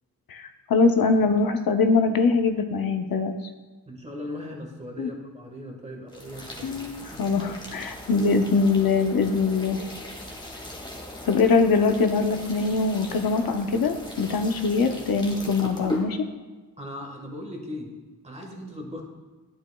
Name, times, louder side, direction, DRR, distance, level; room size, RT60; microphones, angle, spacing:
voice 1, 0.3-3.4 5.0-5.1 6.6-9.8 11.2-16.3, left 4 dB, 70° left, 6 dB, 0.7 m, -23 dB
voice 2, 3.9-6.8 7.1-7.3 8.1-8.2 16.8-17.9 18.2-19.0, left 1 dB, 20° right, 1 dB, 1.4 m, -38 dB
sound 1, 6.1-16.1, left 1 dB, 15° left, 1.4 m, -38 dB
10.0 x 9.6 x 2.2 m, 1.3 s
wide cardioid pair, 120°, 36 cm